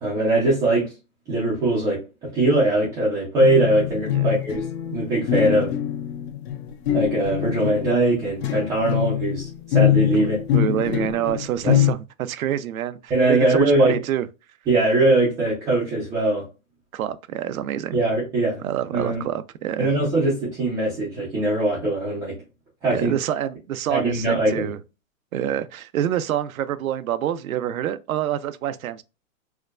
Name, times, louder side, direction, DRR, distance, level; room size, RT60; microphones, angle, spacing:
voice 1, 0.0-0.9 1.3-5.7 6.9-10.4 11.6-11.7 13.1-14.0 14.7-16.4 17.9-18.6 18.9-19.3 19.8-22.4 22.8-23.1 23.9-24.7, right 2 dB, 10° right, 0.4 m, -21 dB
sound 1, 3.4-11.9, left 11 dB, 50° left, 0.5 m, -24 dB
voice 2, 10.1-14.3 16.9-18.0 18.6-19.9 22.9-24.8 25.3-29.0, right 10 dB, 85° right, 0.5 m, -27 dB
4.5 x 2.2 x 2.3 m
hypercardioid pair, 145°, 41 cm